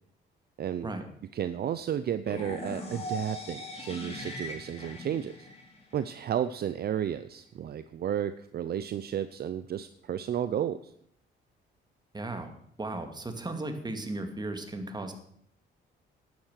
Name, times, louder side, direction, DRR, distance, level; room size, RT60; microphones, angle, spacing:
voice 1, 0.6-0.9 1.3-5.5 5.9-10.8, right 9 dB, 55° right, 13 dB, 0.6 m, -32 dB
sound 1, 2.2-6.2, left 1 dB, 30° left, 3.6 m, -40 dB
voice 2, 12.1-12.5 12.8-15.1, right 2 dB, 20° right, 6 dB, 2.3 m, -35 dB
11.5 x 9.4 x 6.5 m, 0.68 s
cardioid pair, 90°, 20 cm